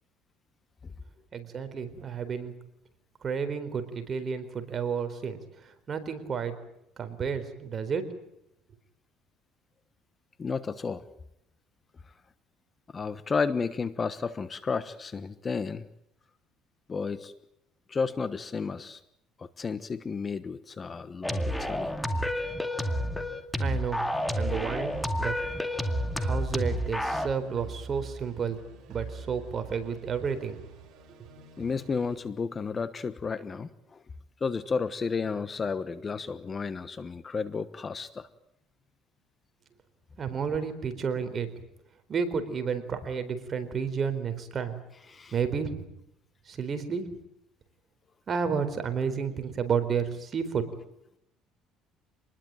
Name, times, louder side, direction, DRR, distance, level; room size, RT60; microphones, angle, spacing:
voice 1, 1.3-2.5 3.2-5.4 5.9-6.5 7.0-8.0 23.6-24.0 24.3-25.3 26.2-28.6 28.9-30.6 40.2-41.5 42.1-44.8 45.3-45.9 46.5-47.0 48.3-50.6, right 6 dB, 35° right, 9 dB, 4.2 m, -31 dB
voice 2, 10.4-11.0 12.9-15.8 16.9-17.3 17.9-19.0 19.4-21.9 31.6-34.0 34.4-38.3 45.1-45.4, left 5 dB, 25° left, 14 dB, 1.2 m, -32 dB
sound 1, 21.2-27.3, equal, 5° left, 2.1 m, -30 dB
sound 2, 24.1-32.2, right 5 dB, 60° right, 7.0 m, -45 dB
26.5 x 20.5 x 9.1 m, 0.81 s
cardioid pair, 125°, 0 cm